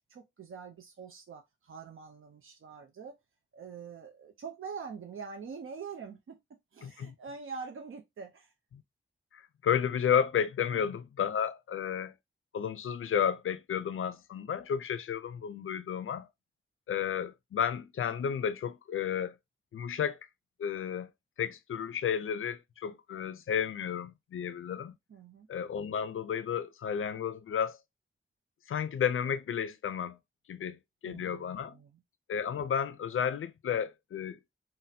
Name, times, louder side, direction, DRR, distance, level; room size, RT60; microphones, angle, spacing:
voice 1, 0.1-3.1 3.5-6.4 6.7-8.5 25.1-25.5 30.6-30.7 31.0-32.0, right 5 dB, 85° right, 0.5 m, -44 dB
voice 2, 6.8-7.1 9.3-12.1 12.5-16.3 16.9-19.4 19.7-20.2 20.6-21.1 21.4-24.9 25.5-27.8 28.7-30.2 30.5-31.8 32.3-34.4, left 8 dB, 85° left, 0.4 m, -32 dB
4.0 x 2.1 x 2.6 m
wide cardioid pair, 90°, 21 cm